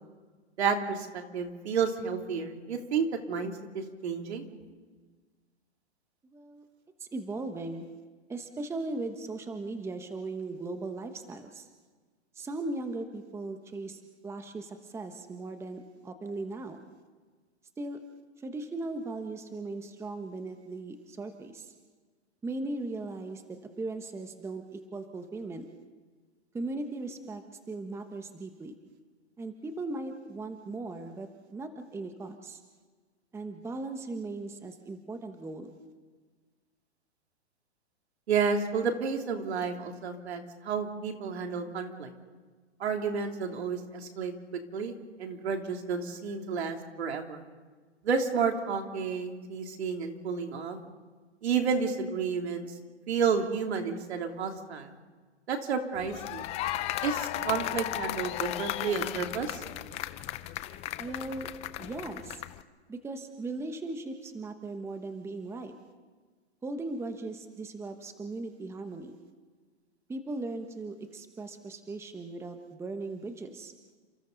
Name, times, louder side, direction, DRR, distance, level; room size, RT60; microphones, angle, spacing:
voice 1, 0.6-4.4 38.3-42.1 42.8-44.3 44.7-47.4 48.0-50.8 51.4-52.7 53.1-54.9 55.5-56.5 57.0-59.6, right 5 dB, 65° right, 3 dB, 3.3 m, -31 dB
voice 2, 6.2-6.6 7.0-7.8 8.3-11.7 12.3-16.8 17.8-18.0 18.4-21.7 22.4-25.7 26.5-28.7 29.4-32.6 33.3-35.7 61.0-61.5 61.8-62.4 62.9-65.7 66.6-69.2 70.1-73.7, right 2 dB, 10° right, 6 dB, 1.2 m, -38 dB
sound 1, 56.0-62.6, left 14 dB, 20° left, 0.6 m, -35 dB
30.0 x 26.5 x 4.1 m, 1.4 s
hypercardioid pair, 135°, 34 cm